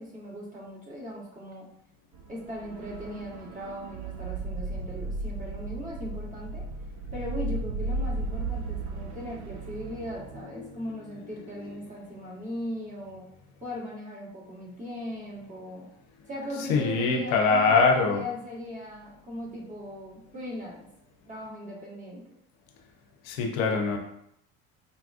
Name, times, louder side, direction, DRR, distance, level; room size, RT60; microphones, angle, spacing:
voice 1, 0.0-1.7 2.3-6.6 7.1-13.3 13.6-15.9 16.3-20.9 21.3-22.2, equal, 20° right, -5 dB, 1.5 m, -38 dB
sound 1, 2.1-10.4, right 3 dB, 50° right, 0.5 m, -35 dB
voice 2, 16.7-18.2 23.2-24.0, left 4 dB, 80° left, 2 dB, 0.7 m, -23 dB
4.0 x 2.3 x 2.4 m, 0.73 s
hypercardioid pair, 70°, 39 cm